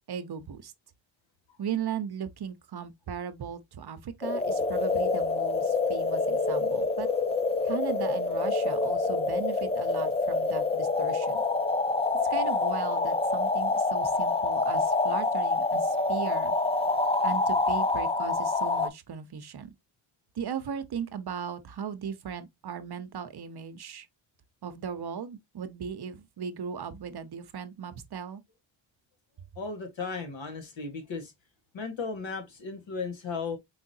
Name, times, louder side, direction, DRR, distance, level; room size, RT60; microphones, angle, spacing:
voice 1, 0.1-0.7 1.6-7.1 7.6-11.4 12.3-16.5 17.2-19.7 20.3-24.1 24.6-28.4, right 7 dB, 50° right, 0.8 m, -37 dB
sound 1, 4.2-18.9, left 3 dB, 15° left, 0.5 m, -27 dB
voice 2, 29.6-31.3 31.7-33.6, left 4 dB, 65° left, 1.6 m, -35 dB
4.7 x 3.5 x 2.6 m
cardioid pair, 60°, 49 cm